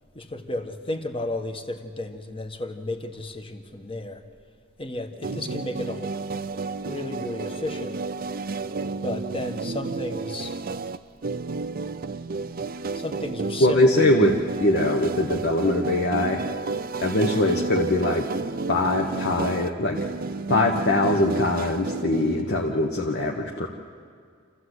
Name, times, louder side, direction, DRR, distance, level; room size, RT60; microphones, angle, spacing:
voice 1, 0.1-4.2 4.8-6.1 6.8-8.0 9.0-10.6 12.9-14.0, left 2 dB, 25° left, 6 dB, 1.4 m, -33 dB
sound 1, 5.2-22.7, right 3 dB, 45° right, 0.6 m, -31 dB
voice 2, 13.6-16.4 17.0-18.3 18.7-20.0 20.5-23.7, left 1 dB, 55° left, 1 dB, 1.3 m, -22 dB
27.5 x 14.5 x 8.1 m, 2.1 s
head